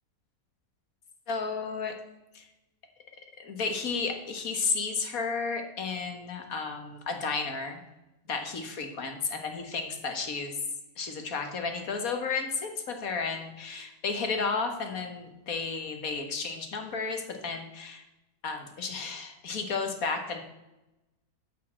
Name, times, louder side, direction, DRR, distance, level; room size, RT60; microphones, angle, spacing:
voice 1, 1.3-2.0 2.3-2.5 3.4-7.8 8.3-10.6 11.0-18.0 18.4-20.4, left 4 dB, 65° left, 5 dB, 1.9 m, -33 dB
10.0 x 5.7 x 7.4 m, 0.97 s
omnidirectional pair, 1.7 m